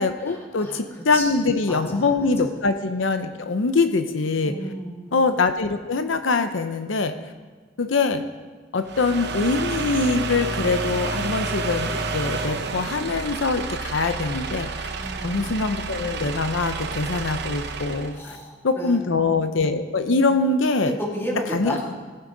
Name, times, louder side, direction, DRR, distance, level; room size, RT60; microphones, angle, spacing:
voice 1, 0.0-4.5 5.1-7.1 7.8-8.2 8.7-14.9 15.2-18.4 18.6-21.0 21.5-21.8, left 3 dB, 85° left, 8 dB, 0.7 m, -23 dB
voice 2, 1.1-2.1 4.4-5.1 15.0-15.5 18.1-19.5 20.9-21.8, equal, 15° left, -3 dB, 2.6 m, -33 dB
sound 1, 8.8-18.2, right 3 dB, 60° right, 0.9 m, -30 dB
18.0 x 10.0 x 3.9 m, 1.4 s
head